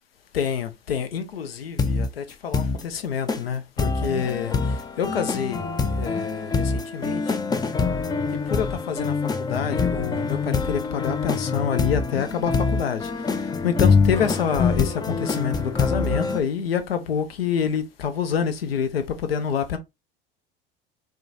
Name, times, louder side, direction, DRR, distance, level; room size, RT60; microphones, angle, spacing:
voice 1, 0.3-5.7 6.0-7.4 8.3-19.8, left 7 dB, 90° left, 0.6 m, -27 dB
sound 1, 1.8-2.1 2.5-2.8 3.3-3.4 3.8-16.4, left 4 dB, 15° left, 0.4 m, -25 dB
4.5 x 2.3 x 2.6 m
hypercardioid pair, 80°, 29 cm